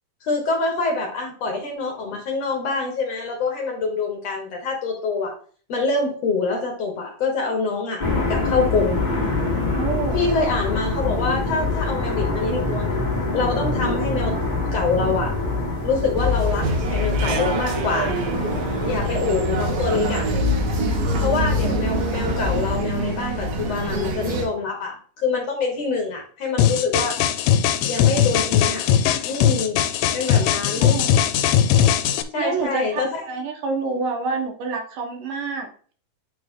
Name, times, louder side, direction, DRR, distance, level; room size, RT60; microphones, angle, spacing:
voice 1, 0.2-5.3 5.7-8.0 8.3-9.0 10.1-13.0 13.3-14.4 14.7-15.3 15.8-18.2 18.8-20.3 21.2-24.9 25.2-27.2 27.9-28.9 29.3-29.8 30.1-31.0 32.3-33.2 33.9-34.0, left 4 dB, 60° left, 0 dB, 1.9 m, -25 dB
sound 1, 8.0-22.8, left 2 dB, 25° left, 0.9 m, -26 dB
voice 2, 9.7-10.3 30.8-31.1 32.3-35.7, right 4 dB, 75° right, 2 dB, 2.6 m, -27 dB
sound 2, 16.2-24.4, equal, 90° right, 2.9 m, -25 dB
sound 3, 26.6-32.2, left 9 dB, 80° left, 2.2 m, -19 dB
8.9 x 3.2 x 3.6 m, 0.44 s
omnidirectional pair, 3.9 m